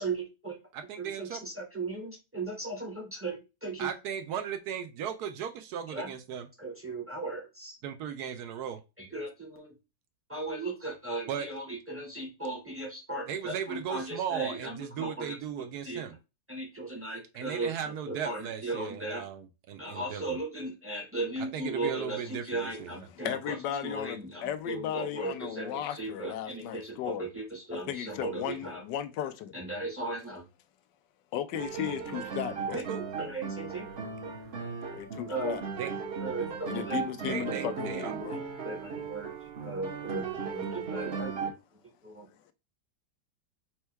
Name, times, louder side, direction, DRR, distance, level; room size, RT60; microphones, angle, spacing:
voice 1, 0.0-0.6 1.0-3.9 5.9-6.1 6.6-7.8 9.0-9.7 10.3-16.0 16.5-19.2 19.8-23.6 23.8-28.8 29.5-30.4 32.7-32.8 33.2-33.9 35.3-35.6 36.2-37.1 37.4-37.7 38.1-38.3 38.6-39.3 39.6-41.4 42.0-42.3, right 2 dB, 10° right, 0.6 m, -37 dB
voice 2, 0.7-1.4 3.8-6.5 7.8-8.8 11.3-11.5 13.3-16.1 17.3-20.4 21.5-23.0 32.9-33.1 35.8-35.9 37.3-38.1, right 8 dB, 75° right, 1.0 m, -36 dB
voice 3, 23.2-27.2 27.9-29.5 31.3-32.8 34.9-35.6 36.7-38.4, left 10 dB, 85° left, 1.2 m, -35 dB
sound 1, 31.5-41.5, right 5 dB, 45° right, 0.9 m, -37 dB
4.4 x 2.2 x 4.5 m
omnidirectional pair, 1.8 m